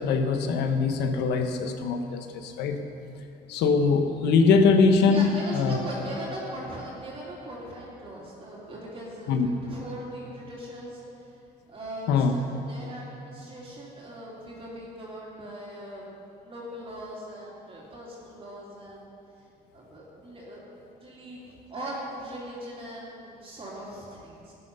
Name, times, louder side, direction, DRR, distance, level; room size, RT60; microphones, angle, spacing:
voice 1, 0.0-2.8 3.5-5.8 9.3-9.5 12.1-12.3, left 4 dB, 85° left, 6 dB, 1.1 m, -22 dB
voice 2, 5.0-11.0 11.7-16.1 16.4-19.0 19.7-20.6 21.0-21.4 21.7-24.5, right 1 dB, 35° right, -5 dB, 3.1 m, -40 dB
13.5 x 9.9 x 5.6 m, 2.7 s
cardioid pair, 110°, 17 cm